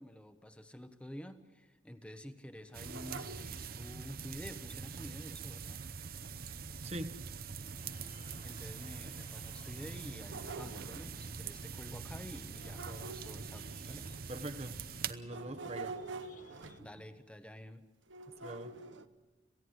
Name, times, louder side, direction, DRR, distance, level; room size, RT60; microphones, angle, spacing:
voice 1, 0.0-5.8 8.4-14.1 16.8-17.8, equal, 5° left, 9 dB, 1.1 m, -49 dB
sound 1, 2.6-4.0 6.2-6.3 6.9-7.0 7.7-7.8 8.3-8.4 9.9-11.2 12.5-14.4 15.2-17.1 18.1-19.1, right 3 dB, 85° right, 1.1 m, -47 dB
sound 2, 2.7-15.1, right 6 dB, 50° right, 0.8 m, -44 dB
voice 2, 6.8-7.3 14.3-16.0 18.4-18.8, right 1 dB, 35° right, 7 dB, 1.2 m, -43 dB
sound 3, 7.8-16.8, left 2 dB, 45° left, 1.1 m, -58 dB
27.0 x 16.5 x 8.0 m, 1.2 s
head